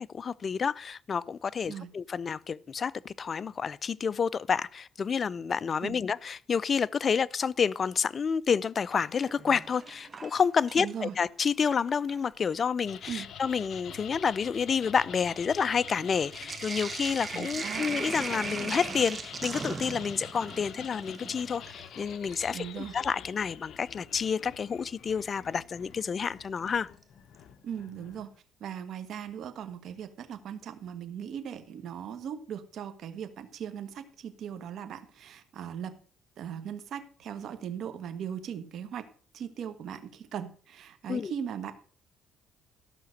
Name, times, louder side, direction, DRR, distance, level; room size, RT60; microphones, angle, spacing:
voice 1, 0.0-26.9 41.1-41.3, left 6 dB, 40° left, 0.4 m, -29 dB
Sink (filling or washing), 9.1-11.1 11.4-12.3 13.1-13.2 13.4-22.6 24.3-24.4 26.2-26.7 27.0-27.1 27.3-27.4, right 4 dB, 30° right, 1.4 m, -39 dB
voice 2, 10.8-11.1 13.1-13.3 17.3-17.8 22.5-22.9 27.6-28.3 28.6-36.0 36.4-39.0 39.3-41.7, right 8 dB, 65° right, 1.4 m, -39 dB
sound 1, 12.8-28.4, left 9 dB, 65° left, 0.8 m, -47 dB
13.0 x 5.9 x 6.4 m
cardioid pair, 105°, 0 cm